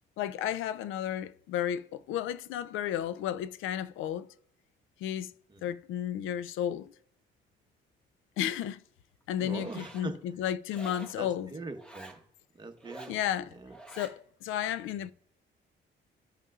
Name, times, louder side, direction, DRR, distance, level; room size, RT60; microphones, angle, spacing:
voice 1, 0.2-4.3 5.0-5.3 5.6-6.9 8.4-8.8 9.3-11.5 13.1-13.6 13.9-15.1, left 10 dB, 85° left, 0.4 m, -33 dB
voice 2, 9.4-10.2 11.2-12.2 12.6-13.1 13.6-13.7, right 3 dB, 20° right, 1.0 m, -41 dB
Zipper (clothing), 9.5-10.1 10.7-11.2 11.8-12.2 12.8-13.2 13.7-14.2, right 2 dB, 5° left, 1.2 m, -48 dB
15.5 x 5.4 x 2.4 m
cardioid pair, 90°, 20 cm